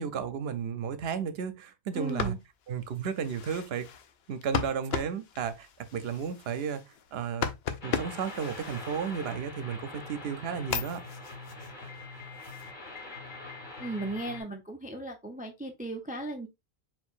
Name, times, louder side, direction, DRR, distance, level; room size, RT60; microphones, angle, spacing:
voice 1, 0.0-2.3 2.7-3.9 4.3-6.8 7.1-7.5 7.8-11.0, right 7 dB, 75° right, 0.8 m, -33 dB
sound 1, 1.9-9.6 10.1-12.7, left 7 dB, 70° left, 0.8 m, -38 dB
voice 2, 1.9-2.4 13.8-16.5, right 2 dB, 15° right, 0.3 m, -36 dB
sound 2, 7.8-14.4, left 3 dB, 50° left, 1.3 m, -43 dB
4.5 x 3.9 x 2.4 m
omnidirectional pair, 1.1 m